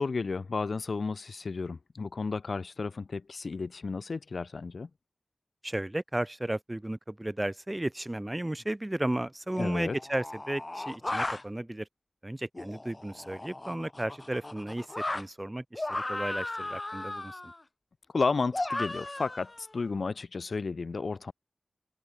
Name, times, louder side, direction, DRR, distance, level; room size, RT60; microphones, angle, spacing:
voice 1, 0.0-4.9 9.6-10.0 18.1-21.3, left 4 dB, 75° left, 0.4 m, -32 dB
voice 2, 5.6-11.9 12.2-17.5, right 1 dB, 20° right, 0.3 m, -34 dB
sound 1, 8.6-8.7 9.5-11.4 12.5-15.2 15.7-17.6 18.5-19.8, left 2 dB, 35° left, 0.8 m, -36 dB
cardioid pair, 45°, 0 cm